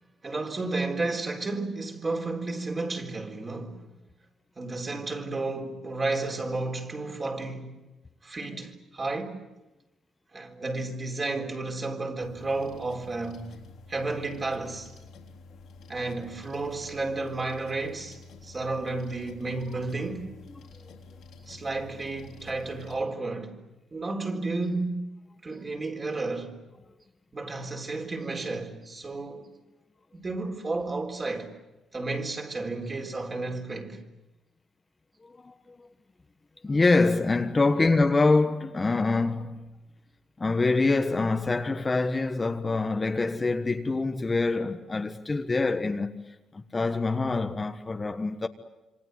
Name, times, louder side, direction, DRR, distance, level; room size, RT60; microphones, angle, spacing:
voice 1, 0.2-3.9 4.6-7.7 8.2-9.4 10.3-13.5 13.9-14.9 15.9-20.3 21.5-23.6 23.9-25.1 25.4-26.6 27.3-29.5 30.1-31.5 31.9-34.0 37.7-37.9, right 3 dB, 30° right, 4.0 m, -32 dB
sound 1, 12.2-23.0, left 3 dB, 75° left, 3.7 m, -50 dB
voice 2, 35.4-35.9 36.6-39.7 40.4-48.5, left 3 dB, 25° left, 1.4 m, -25 dB
27.0 x 25.0 x 8.1 m
cardioid pair, 90°, 0 cm